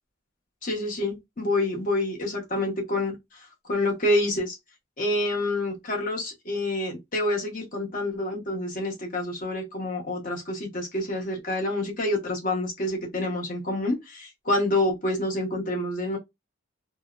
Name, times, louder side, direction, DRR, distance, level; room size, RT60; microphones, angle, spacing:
voice 1, 0.6-4.6 5.0-16.2, left 1 dB, 40° left, 0.8 m, -28 dB
2.7 x 2.0 x 2.3 m
head